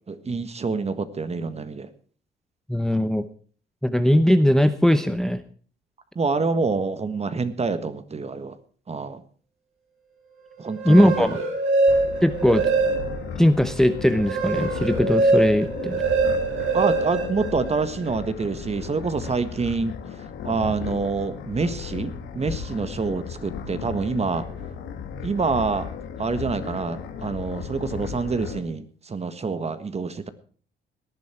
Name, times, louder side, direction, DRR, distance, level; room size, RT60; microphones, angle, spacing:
voice 1, 0.1-1.9 6.1-8.6 8.9-9.2 10.6-11.4 16.7-19.9 20.4-24.5 25.2-25.9 26.2-30.3, right 4 dB, 30° right, 12 dB, 1.6 m, -26 dB
voice 2, 2.7-3.2 3.8-5.4 10.8-11.4 12.2-12.7 13.4-16.0, equal, ahead, 11 dB, 0.8 m, -19 dB
sound 1, 10.7-13.3 13.8-18.1, right 3 dB, 85° right, 5.3 m, -23 dB
sound 2, 11.9-28.6, left 7 dB, 80° left, 2.3 m, -36 dB
18.5 x 10.5 x 4.5 m, 0.44 s
cardioid pair, 90°, 20 cm